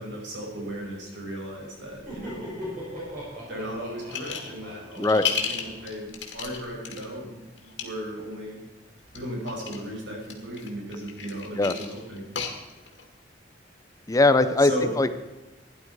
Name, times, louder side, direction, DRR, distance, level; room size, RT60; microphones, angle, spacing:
voice 1, 0.0-2.5 3.5-8.6 9.1-12.3 14.6-14.9, equal, 85° right, -2 dB, 5.7 m, -35 dB
Laughter, 1.8-6.5, equal, 45° right, 5.8 m, -40 dB
sound 1, 4.1-4.6 4.9-7.0 7.6-7.8 9.1-9.8 10.2-13.0, left 7 dB, 80° left, 2.2 m, -32 dB
voice 2, 14.1-14.7 15.0-15.3, left 2 dB, 20° left, 12 dB, 0.6 m, -20 dB
16.0 x 11.0 x 4.7 m, 1.1 s
head